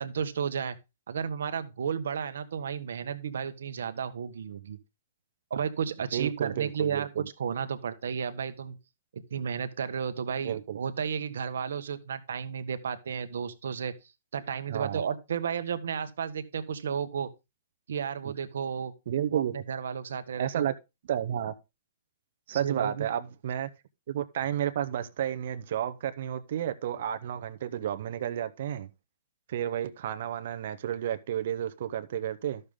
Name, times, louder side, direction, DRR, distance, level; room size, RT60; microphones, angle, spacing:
voice 1, 0.0-0.8 1.1-4.8 5.5-8.8 9.1-13.9 14.3-17.3 17.9-18.9 19.3-20.7 22.5-23.1, right 7 dB, 75° right, 1.1 m, -33 dB
voice 2, 6.1-7.3 10.4-10.8 14.7-15.0 18.2-18.3 19.1-19.5 20.4-20.7 21.1-21.5 22.5-23.7 24.1-28.9 29.5-32.6, right 10 dB, 60° right, 0.8 m, -31 dB
12.0 x 6.7 x 3.6 m
hypercardioid pair, 140°, 0 cm